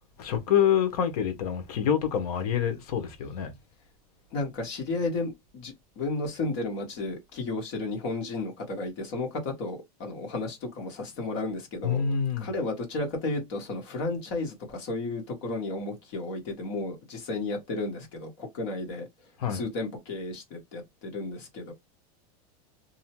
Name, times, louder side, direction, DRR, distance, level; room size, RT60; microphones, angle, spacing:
voice 1, 0.2-3.5 11.8-12.5 19.4-19.6, left 8 dB, 70° left, 0.8 m, -26 dB
voice 2, 4.3-12.0 12.4-19.1 19.5-21.7, left 2 dB, 50° left, 1.3 m, -33 dB
2.7 x 2.1 x 2.9 m
supercardioid pair, 150°, 20 cm